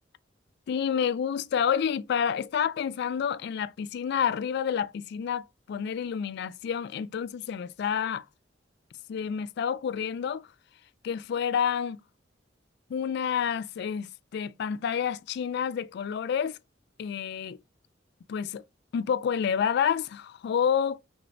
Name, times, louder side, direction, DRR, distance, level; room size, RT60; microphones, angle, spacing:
voice 1, 0.7-8.2 9.1-10.5 11.0-12.0 12.9-16.6 17.0-17.6 18.3-18.6 18.9-21.0, left 7 dB, 60° left, 0.3 m, -29 dB
3.1 x 2.1 x 4.0 m
head